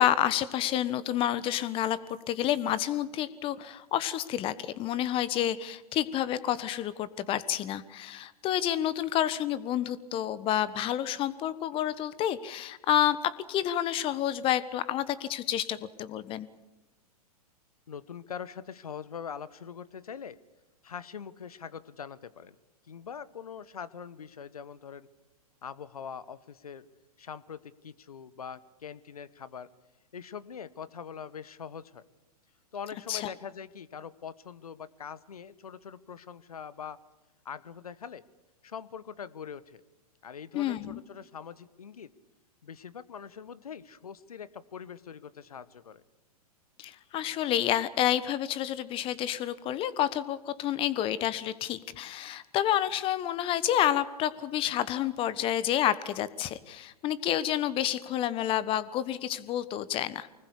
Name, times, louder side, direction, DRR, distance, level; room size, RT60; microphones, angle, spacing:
voice 1, 0.0-2.0 2.3-16.5 33.1-33.3 40.5-41.0 46.8-60.3, left 11 dB, 25° left, 17 dB, 1.3 m, -29 dB
voice 2, 17.9-20.4 20.8-22.6 22.8-25.1 25.6-26.9 27.2-29.7 30.1-32.0 32.7-37.0 37.4-38.2 38.6-39.8 40.2-42.1 42.6-46.0, left 7 dB, 70° left, 17 dB, 1.3 m, -43 dB
25.0 x 20.0 x 8.5 m, 0.99 s
figure-of-eight pair, 110°, 20 cm